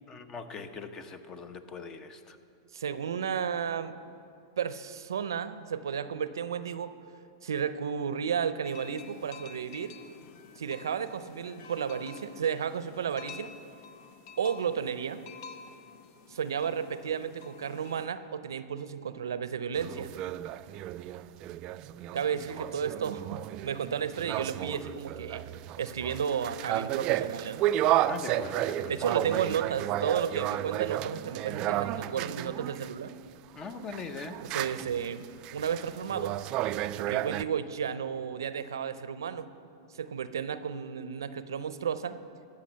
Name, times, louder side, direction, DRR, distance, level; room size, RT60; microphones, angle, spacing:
voice 1, 0.1-2.4 28.1-28.9 33.6-34.4, left 5 dB, 25° left, 10 dB, 0.8 m, -41 dB
voice 2, 2.7-4.0 4.6-6.9 7.4-10.0 10.6-13.5 14.4-15.2 16.3-20.1 22.1-25.4 25.8-27.6 28.3-28.4 28.9-33.1 34.4-35.2 35.5-36.4 37.1-39.5 39.9-42.2, right 7 dB, 85° right, 13 dB, 0.6 m, -33 dB
sound 1, 8.6-18.1, left 6 dB, 55° left, 0.8 m, -50 dB
sound 2, 19.7-32.9 33.7-37.4, right 13 dB, 40° right, 0.3 m, -32 dB
14.5 x 6.1 x 7.5 m, 2.5 s
hypercardioid pair, 120°, 2 cm